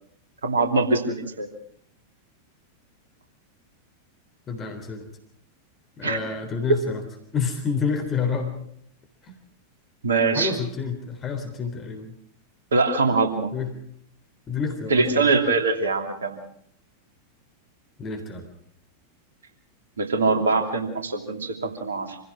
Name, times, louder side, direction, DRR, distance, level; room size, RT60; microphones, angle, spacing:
voice 1, 0.4-1.5 6.0-6.2 10.0-10.5 12.7-13.5 14.9-16.4 20.0-22.2, right 3 dB, 70° right, 5 dB, 2.8 m, -23 dB
voice 2, 4.5-5.1 6.0-7.0 7.3-8.5 9.2-9.4 10.3-12.1 13.5-13.7 14.5-15.6 18.0-18.5, left 5 dB, 25° left, 4 dB, 3.7 m, -29 dB
26.5 x 16.0 x 6.2 m, 0.66 s
figure-of-eight pair, 90°, 0 cm